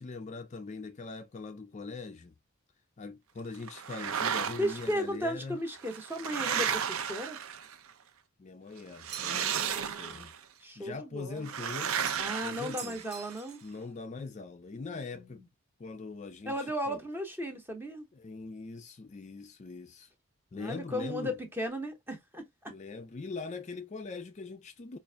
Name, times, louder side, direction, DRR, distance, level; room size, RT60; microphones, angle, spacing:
voice 1, 0.0-2.3 3.0-5.6 8.4-10.3 10.8-13.0 13.6-15.4 15.8-17.0 18.1-20.1 20.5-21.3 22.7-25.0, left 4 dB, 30° left, 0.3 m, -42 dB
sound 1, 3.7-4.9 5.7-7.9 9.0-10.4 11.4-13.3, right 8 dB, 65° right, 0.5 m, -34 dB
voice 2, 4.6-7.4 9.3-10.3 10.6-11.5 12.2-13.6 14.9-15.4 16.5-18.1 20.5-22.7, equal, 10° right, 0.7 m, -36 dB
sound 2, 9.1-9.6 12.0-12.4 12.8-13.7, right 7 dB, 45° right, 1.1 m, -45 dB
5.1 x 2.5 x 2.2 m
head